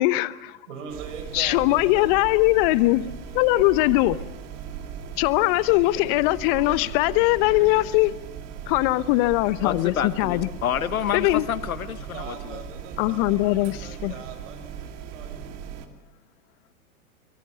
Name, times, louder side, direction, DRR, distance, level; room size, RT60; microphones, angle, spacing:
voice 1, 0.0-0.6 1.3-3.1 3.3-4.2 5.2-8.1 8.7-10.5 11.1-11.5 13.0-14.1, left 18 dB, 40° left, 0.9 m, -21 dB
voice 2, 0.7-2.1 12.1-15.6, right 6 dB, 60° right, 6.6 m, -41 dB
sound 1, 0.9-15.9, right 7 dB, 35° right, 2.5 m, -38 dB
voice 3, 9.6-12.6, left 9 dB, 75° left, 1.3 m, -29 dB
24.0 x 23.0 x 6.6 m
figure-of-eight pair, 100°, 42 cm